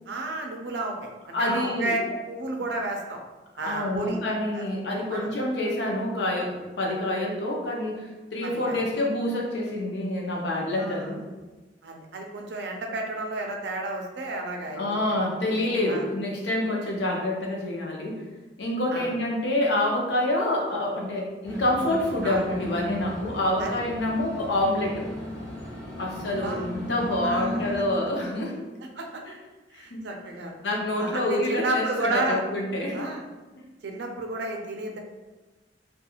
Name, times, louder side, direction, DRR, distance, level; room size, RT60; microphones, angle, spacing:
voice 1, 0.1-3.2 3.6-4.2 4.5-4.6 5.1-5.3 8.4-8.8 10.7-11.1 11.8-14.8 15.1-15.2 15.9-16.0 18.9-19.1 22.2-22.5 23.6-23.8 26.4-26.6 27.2-27.6 29.0-29.2 29.8-30.6 31.0-32.4 32.9-33.3 33.8-35.0, right 2 dB, 65° right, 2 dB, 0.4 m, -32 dB
voice 2, 1.3-2.0 3.6-11.2 14.7-18.2 18.6-25.1 26.0-28.7 29.7-30.0 30.6-33.1, left 1 dB, 70° left, -1 dB, 0.6 m, -27 dB
sound 1, 21.4-27.9, left 1 dB, 10° left, 1.0 m, -36 dB
2.9 x 2.3 x 2.3 m, 1.2 s
head